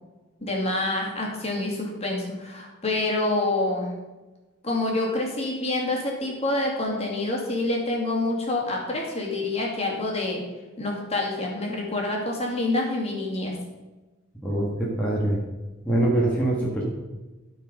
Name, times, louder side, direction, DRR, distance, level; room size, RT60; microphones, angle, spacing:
voice 1, 0.4-3.9 4.6-10.4 10.8-13.6, left 2 dB, 30° left, -2 dB, 2.3 m, -27 dB
voice 2, 14.4-15.4 15.8-16.8, right 1 dB, 5° left, -5 dB, 1.5 m, -24 dB
13.5 x 4.7 x 5.1 m, 1.2 s
head